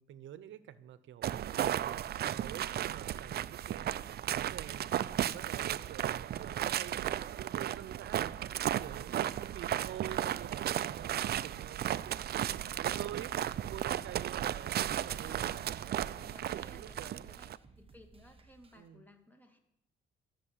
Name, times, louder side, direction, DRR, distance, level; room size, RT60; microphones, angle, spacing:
voice 1, 0.0-1.4 1.8-8.3 8.8-12.2 12.5-13.3 13.7-15.9 16.5-17.3 18.7-19.1, right 11 dB, 75° right, 15 dB, 0.9 m, -48 dB
sound 1, 1.2-17.6, right 11 dB, 55° right, 0.4 m, -35 dB
sound 2, 10.9-18.9, right 3 dB, 30° right, 1.2 m, -60 dB
voice 2, 14.9-15.5 16.1-19.6, equal, 10° left, 4 dB, 2.3 m, -58 dB
12.5 x 6.9 x 9.5 m, 0.82 s
cardioid pair, 90°, 20 cm